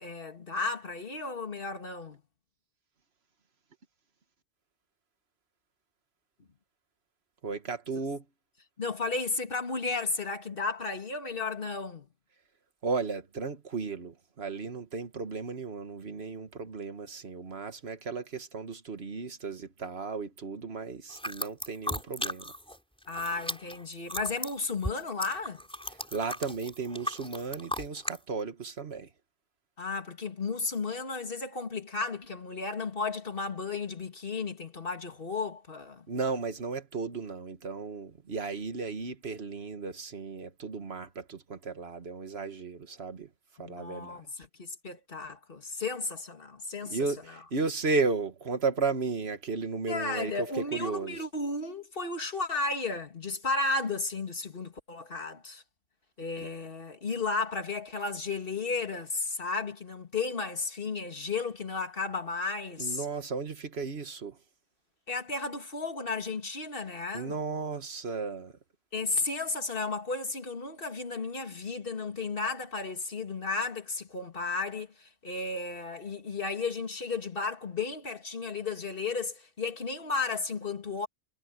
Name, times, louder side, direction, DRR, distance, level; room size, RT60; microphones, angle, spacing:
voice 1, 0.0-2.2 8.8-12.1 23.1-25.6 29.8-36.1 43.6-47.0 49.9-55.6 56.2-63.0 65.1-67.3 68.9-81.1, left 4 dB, 55° left, 2.5 m, -34 dB
voice 2, 7.4-8.2 12.8-22.5 26.1-29.1 36.1-43.3 43.6-44.2 46.8-51.2 56.4-56.5 62.8-64.4 67.1-68.5, right 4 dB, 65° right, 1.8 m, -34 dB
sound 1, 21.1-22.8 23.0-28.2, equal, 5° left, 4.7 m, -36 dB
omnidirectional pair, 1.1 m